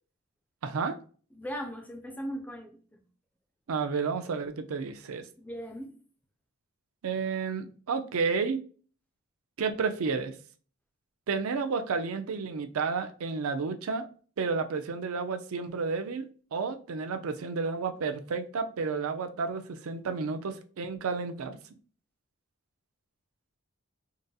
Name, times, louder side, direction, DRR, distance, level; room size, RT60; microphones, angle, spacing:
voice 1, 0.6-1.0 3.7-5.3 7.0-8.6 9.6-10.3 11.3-14.1 14.4-21.6, right 5 dB, 75° right, 0.4 m, -31 dB
voice 2, 1.3-2.8 5.4-5.9, equal, 5° left, 0.5 m, -38 dB
3.8 x 2.6 x 2.3 m
head